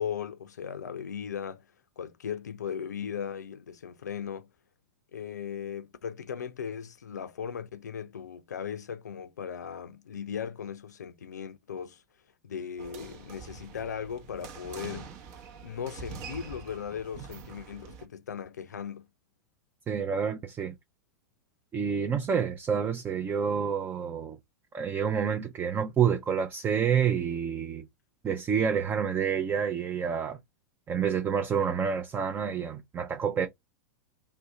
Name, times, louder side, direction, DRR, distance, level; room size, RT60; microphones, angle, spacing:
voice 1, 0.0-1.6 2.0-4.5 5.1-12.0 12.4-15.1 15.6-19.1, left 7 dB, 80° left, 0.4 m, -37 dB
sound 1, 12.8-18.0, right 5 dB, 45° right, 0.8 m, -45 dB
voice 2, 19.9-20.7 21.7-24.4 24.7-27.8 28.2-30.4 30.9-33.5, right 7 dB, 20° right, 0.5 m, -28 dB
2.7 x 2.1 x 3.6 m
hypercardioid pair, 95°, 9 cm